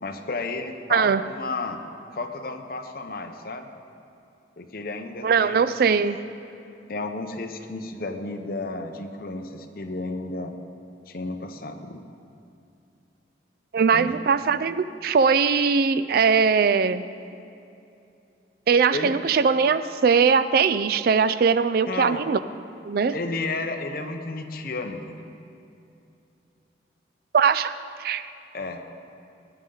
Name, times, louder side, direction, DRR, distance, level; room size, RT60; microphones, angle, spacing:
voice 1, 0.0-1.8 2.1-3.7 4.6-6.0 6.9-10.5 11.1-12.0 13.9-14.1 18.9-19.2 21.8-22.2 23.1-25.3 28.5-28.8, left 3 dB, 50° left, 5 dB, 0.8 m, -32 dB
voice 2, 0.9-1.2 5.2-6.2 13.7-17.0 18.7-22.4 22.8-23.2 27.3-27.7 28.0-28.3, right 5 dB, 55° right, 13 dB, 0.3 m, -20 dB
17.5 x 9.7 x 3.9 m, 2.7 s
head